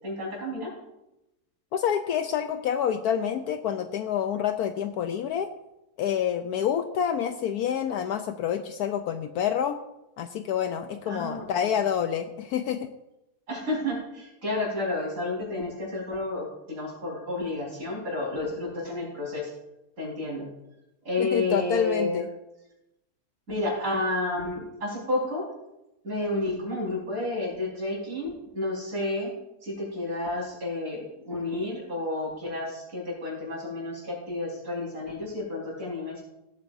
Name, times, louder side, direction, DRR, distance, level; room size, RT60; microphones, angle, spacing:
voice 1, 0.0-0.7 11.1-11.8 13.5-19.5 20.0-20.5 21.1-22.2 23.5-25.5 26.0-29.3 29.6-36.2, left 2 dB, 50° right, -4 dB, 5.2 m, -31 dB
voice 2, 1.7-5.5 6.0-9.8 10.2-12.9 21.2-22.3, left 8 dB, 70° left, 8 dB, 1.0 m, -27 dB
17.5 x 8.8 x 2.6 m, 0.90 s
omnidirectional pair, 1.8 m